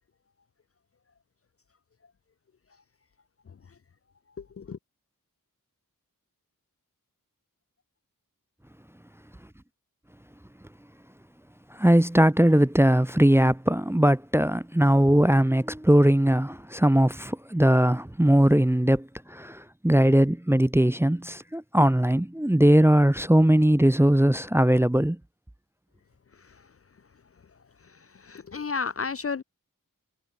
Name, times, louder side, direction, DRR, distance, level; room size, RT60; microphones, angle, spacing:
voice 1, 11.7-25.2, right 1 dB, 5° right, 0.5 m, -20 dB
voice 2, 28.2-29.4, left 5 dB, 40° left, 0.5 m, -31 dB
wide cardioid pair, 55°, 35 cm